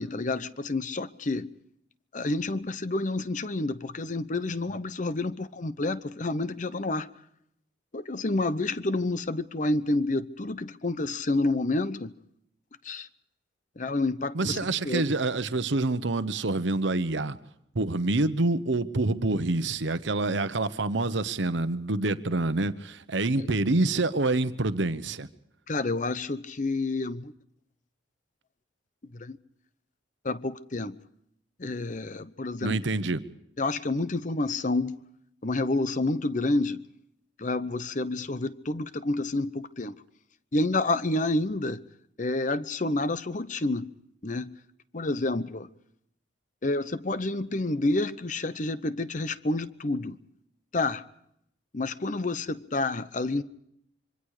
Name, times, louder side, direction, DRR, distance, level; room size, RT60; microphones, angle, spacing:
voice 1, 0.0-1.5 2.1-7.1 7.9-12.1 12.8-13.1 13.8-14.6 14.8-15.1 23.4-23.5 25.7-27.3 29.1-29.4 30.2-31.0 31.6-32.8 33.6-35.0 35.4-36.8 37.4-39.9 40.5-41.8 42.2-43.9 44.2-44.6 44.9-45.7 46.6-50.2 50.7-51.0 51.7-53.4, left 2 dB, 40° left, 0.8 m, -29 dB
voice 2, 14.3-17.4 17.7-25.3 32.6-33.2, right 2 dB, 75° right, 1.0 m, -27 dB
26.0 x 24.0 x 4.9 m
head